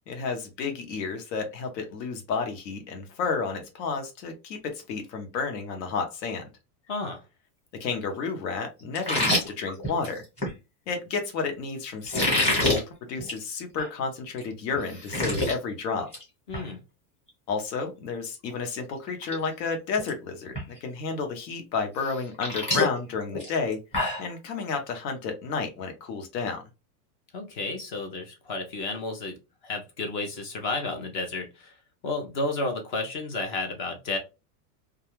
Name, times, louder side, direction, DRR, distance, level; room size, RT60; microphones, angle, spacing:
voice 1, 0.1-6.5 7.8-10.2 10.9-16.1 17.5-23.8 24.2-26.6, left 5 dB, 85° left, 1.0 m, -31 dB
voice 2, 6.9-7.2 16.5-16.8 27.3-29.4 29.6-31.7 32.0-34.2, left 2 dB, 35° left, 0.4 m, -32 dB
sound 1, 8.9-10.5 12.0-12.8 13.2-13.4 13.8-13.9 14.4-14.5 14.7-15.5 15.9-16.2 16.5-16.7 18.5-18.6 19.1-19.4 19.6-20.1 20.5-20.6 22.0-24.3, left 1 dB, 15° left, 0.9 m, -26 dB
2.3 x 2.3 x 2.9 m
supercardioid pair, 170°, 49 cm